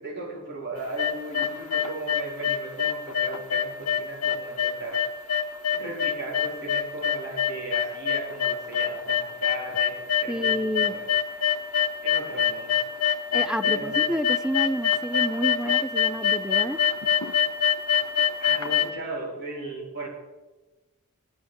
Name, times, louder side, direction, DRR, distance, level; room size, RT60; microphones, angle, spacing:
voice 1, 0.0-5.1 5.7-11.1 11.3-11.6 12.0-12.8 13.6-14.0 18.4-20.1, right 2 dB, 50° right, -4 dB, 3.9 m, -37 dB
sound 1, 0.8-18.9, left 9 dB, 85° left, 0.9 m, -24 dB
voice 2, 10.3-11.0 13.3-16.8, equal, 5° right, 10 dB, 0.5 m, -29 dB
14.0 x 9.5 x 6.9 m, 1.2 s
head